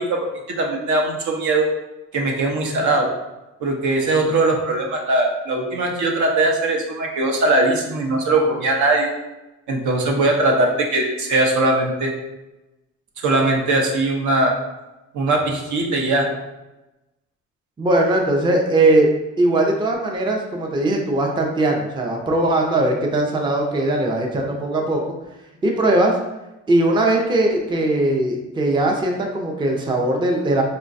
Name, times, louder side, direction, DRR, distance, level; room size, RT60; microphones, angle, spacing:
voice 1, 0.0-1.7 2.1-3.1 3.6-9.1 9.7-12.1 13.2-14.5 15.1-16.3, right 2 dB, 75° right, 1 dB, 0.7 m, -20 dB
voice 2, 17.8-19.1 19.4-25.0 25.6-26.2 26.7-30.6, right 2 dB, 15° right, 1 dB, 0.4 m, -19 dB
3.8 x 2.2 x 2.5 m, 1.0 s
cardioid pair, 90°, 30 cm